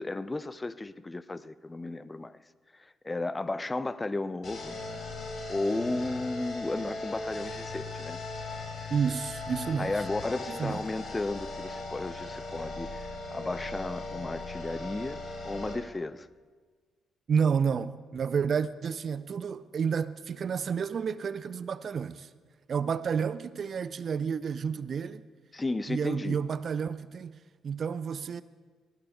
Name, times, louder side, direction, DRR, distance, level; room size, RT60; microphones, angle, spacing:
voice 1, 0.0-2.4 2.7-4.8 5.5-8.2 9.8-15.2 15.4-16.3 25.5-26.4, left 2 dB, 20° left, 0.5 m, -34 dB
sound 1, 4.4-15.7, left 2 dB, 55° left, 3.8 m, -38 dB
voice 2, 8.9-9.9 10.5-10.8 17.3-22.3 22.7-25.2 25.9-27.4 27.6-28.4, right 6 dB, 45° right, 0.4 m, -30 dB
20.0 x 16.5 x 2.3 m
figure-of-eight pair, 40°, 0 cm